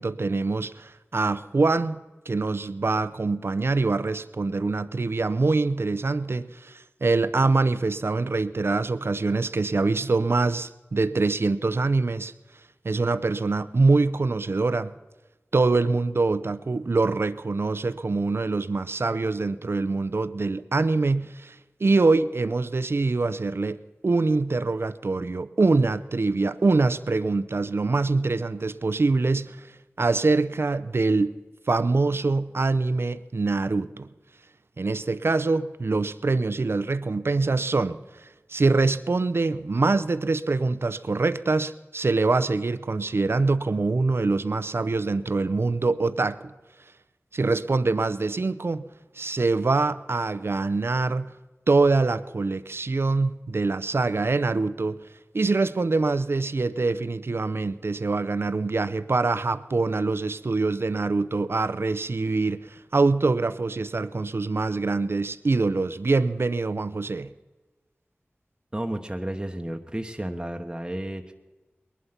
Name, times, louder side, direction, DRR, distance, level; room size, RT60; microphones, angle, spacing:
voice 1, 0.0-12.3 12.8-14.9 15.5-29.7 30.0-31.4 31.7-34.1 34.8-46.5 47.3-48.8 49.1-51.3 51.7-55.0 55.3-67.3, right 3 dB, 65° right, 0.6 m, -24 dB
voice 2, 68.7-71.3, right 1 dB, 20° right, 1.1 m, -32 dB
20.0 x 11.5 x 5.8 m
wide cardioid pair, 45°, 4 cm